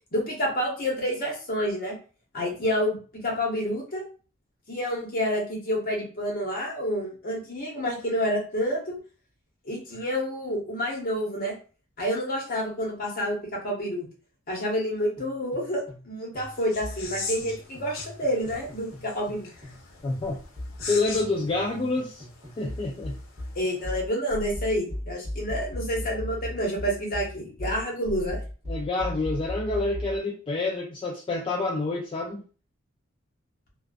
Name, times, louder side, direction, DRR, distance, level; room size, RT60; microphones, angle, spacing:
voice 1, 0.1-1.9 2.3-4.0 4.7-9.0 9.6-11.5 12.0-14.1 14.5-19.5 23.5-28.4, equal, 45° left, -1 dB, 0.9 m, -29 dB
sound 1, 15.2-16.1 16.3-19.8 20.1-30.2, left 1 dB, 35° right, 1.1 m, -37 dB
sound 2, 16.4-23.8, left 4 dB, 90° left, 0.5 m, -41 dB
voice 2, 20.0-20.4 20.9-22.3 22.6-23.2 28.7-32.4, left 3 dB, 25° left, -1 dB, 0.3 m, -28 dB
2.4 x 2.3 x 2.2 m, 0.37 s
head